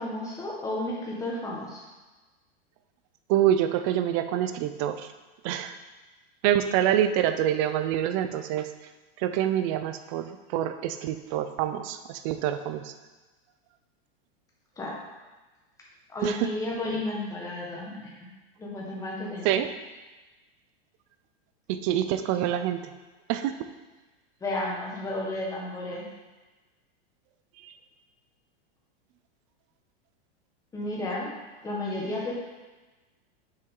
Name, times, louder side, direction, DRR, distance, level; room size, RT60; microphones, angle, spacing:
voice 1, 0.0-1.8 14.8-14.9 16.1-18.1 18.6-19.5 24.4-26.0 30.7-31.3 31.6-32.3, left 1 dB, 10° left, -4 dB, 1.4 m, -32 dB
voice 2, 3.3-5.1 5.4-5.7 6.4-8.7 9.2-12.9 16.2-16.5 19.4-19.7 21.7-22.8 23.3-23.5 27.6-27.7, right 11 dB, 30° right, 10 dB, 0.4 m, -26 dB
7.3 x 6.3 x 3.8 m, 1.2 s
supercardioid pair, 155°, 31 cm